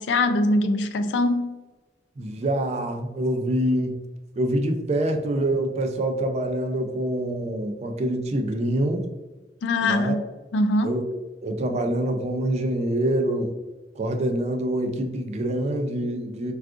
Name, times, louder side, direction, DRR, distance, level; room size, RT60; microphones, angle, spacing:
voice 1, 0.0-1.6 9.6-10.3 10.5-11.0, left 2 dB, 85° left, 9 dB, 0.3 m, -22 dB
voice 2, 2.2-4.0 4.4-9.1 9.8-10.2 10.8-11.0 11.4-13.5 14.0-16.5, right 1 dB, 40° right, 6 dB, 0.3 m, -25 dB
3.6 x 2.4 x 2.4 m, 1.2 s
head